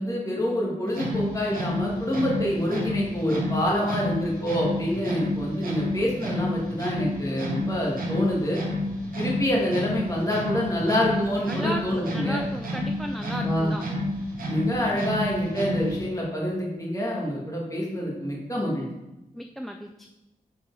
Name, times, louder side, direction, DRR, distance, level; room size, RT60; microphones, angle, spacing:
voice 1, 0.0-8.6 9.2-12.4 13.4-13.7 14.5-18.8, equal, 25° left, -4 dB, 1.9 m, -27 dB
sound 1, 0.9-16.1, left 1 dB, 90° right, 1.1 m, -30 dB
voice 2, 11.5-13.9 19.3-20.1, right 1 dB, ahead, 5 dB, 0.3 m, -35 dB
4.7 x 4.6 x 4.8 m, 0.99 s
wide cardioid pair, 75°, 15 cm